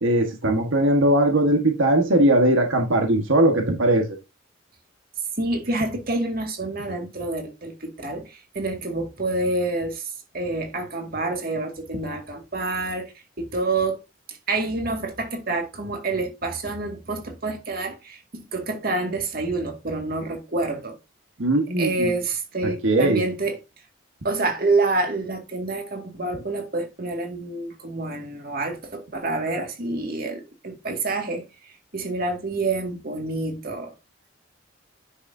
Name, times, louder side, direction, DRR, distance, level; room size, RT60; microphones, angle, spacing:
voice 1, 0.0-4.2 21.4-22.1 22.6-23.3, right 1 dB, 90° right, 1.5 m, -20 dB
voice 2, 5.4-13.1 13.4-14.0 14.5-21.0 21.8-23.6 24.2-31.4 31.9-33.9, right 2 dB, 50° right, 2.1 m, -27 dB
9.8 x 6.5 x 2.7 m
head